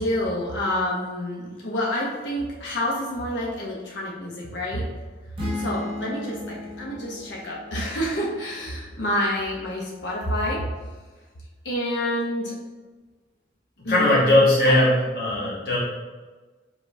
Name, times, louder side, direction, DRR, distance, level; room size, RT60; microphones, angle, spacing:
voice 1, 0.0-4.8 5.5-10.6 11.6-12.5 13.8-14.4 14.6-14.8, left 1 dB, 75° left, -4 dB, 0.8 m, -28 dB
sound 1, 5.4-9.1, left 2 dB, 25° right, 1.0 m, -36 dB
voice 2, 13.8-15.8, left 1 dB, 55° left, -7 dB, 1.2 m, -19 dB
5.0 x 3.8 x 2.7 m, 1.3 s
head